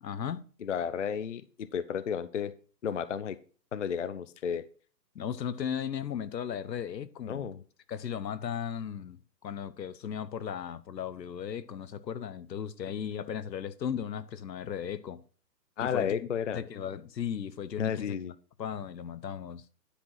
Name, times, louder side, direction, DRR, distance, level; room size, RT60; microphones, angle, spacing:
voice 1, 0.0-0.5 5.1-7.5 7.9-15.2 15.8-16.2 16.5-18.1 18.6-19.6, left 8 dB, 80° left, 0.9 m, -36 dB
voice 2, 0.6-2.5 2.8-3.4 3.7-4.6 7.3-7.6 15.8-16.6 17.8-18.3, left 7 dB, 50° left, 0.5 m, -32 dB
10.0 x 4.8 x 5.6 m
hypercardioid pair, 160°, 50 cm